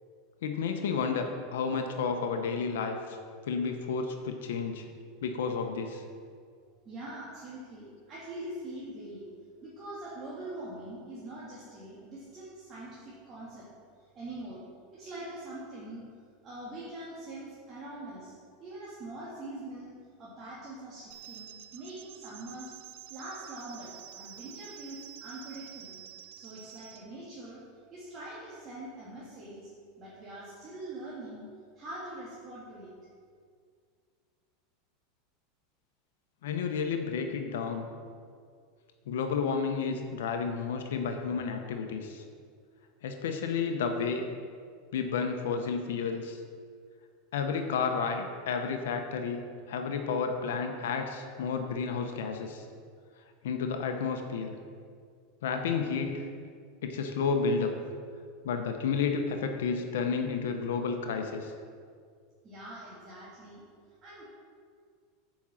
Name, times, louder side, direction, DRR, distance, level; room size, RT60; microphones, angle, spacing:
voice 1, 0.4-3.2 3.5-4.9 5.2-6.0 36.4-37.9 39.1-42.2 43.0-44.2 44.9-46.4 47.3-52.6 53.4-54.6 55.4-56.3 56.8-57.7 58.4-61.5, left 5 dB, 90° left, 5 dB, 0.8 m, -31 dB
voice 2, 6.9-9.3 9.6-13.7 14.1-14.6 14.9-16.0 16.4-18.3 18.6-22.7 23.1-26.0 26.3-27.6 27.9-29.7 30.0-31.4 31.8-32.9 62.4-63.6 64.0-64.2, right 1 dB, 30° right, -8 dB, 1.9 m, -43 dB
sound 1, 21.1-27.0, right 10 dB, 70° right, 0.7 m, -48 dB
7.3 x 5.2 x 7.2 m, 2.1 s
supercardioid pair, 150°, 0 cm